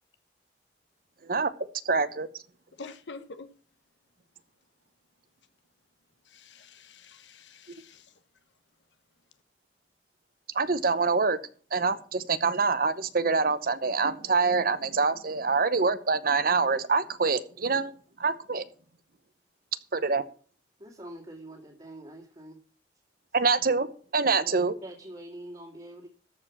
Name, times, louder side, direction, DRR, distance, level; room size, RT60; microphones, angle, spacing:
voice 1, 1.8-2.3 10.5-11.4 11.7-17.9 18.2-18.6 19.9-20.2 23.3-23.9 24.1-24.7, right 4 dB, 55° right, 0.9 m, -25 dB
voice 2, 2.8-3.5 6.2-8.1, left 4 dB, 85° left, 1.2 m, -46 dB
voice 3, 20.8-22.6 24.4-26.1, right 1 dB, 30° right, 2.4 m, -45 dB
13.5 x 5.1 x 7.2 m
head